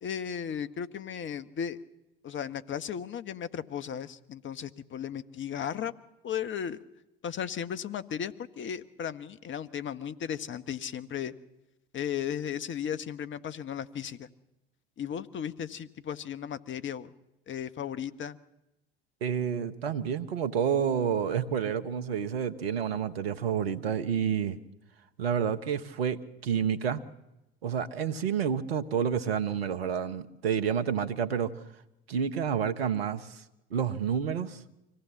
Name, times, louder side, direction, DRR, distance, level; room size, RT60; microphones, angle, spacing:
voice 1, 0.0-1.8 2.2-5.9 6.2-6.8 7.2-11.3 11.9-14.3 15.0-17.1 17.5-18.4, left 8 dB, 40° left, 1.3 m, -35 dB
voice 2, 19.2-24.6 25.2-27.0 27.6-31.5 32.1-33.4 33.7-34.6, right 7 dB, 80° right, 1.2 m, -29 dB
25.0 x 17.5 x 7.1 m
hypercardioid pair, 65°, 30 cm